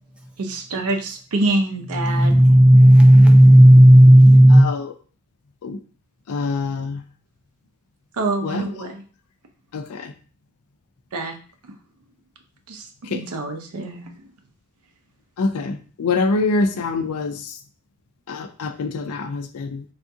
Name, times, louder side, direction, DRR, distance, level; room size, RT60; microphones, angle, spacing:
voice 1, 0.4-2.4 8.1-9.0 11.1-11.4 12.7-14.3, right 2 dB, 80° right, 4 dB, 0.6 m, -26 dB
voice 2, 1.9-4.7, equal, 5° right, 1 dB, 0.5 m, -9 dB
voice 3, 6.3-7.0 8.4-8.9 9.7-10.1 13.1-13.2 15.4-17.4 18.3-19.8, left 3 dB, 80° left, 9 dB, 0.4 m, -25 dB
3.5 x 2.4 x 2.6 m, 0.39 s
head